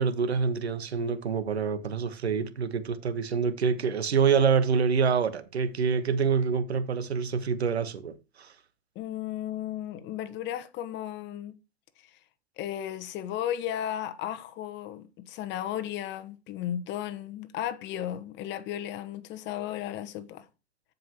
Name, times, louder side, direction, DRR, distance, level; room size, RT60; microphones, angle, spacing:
voice 1, 0.0-8.5, right 6 dB, 90° right, 1.0 m, -26 dB
voice 2, 8.9-11.6 12.0-12.2 12.6-20.5, left 11 dB, 35° left, 1.1 m, -35 dB
14.0 x 5.3 x 3.0 m
hypercardioid pair, 110°, 31 cm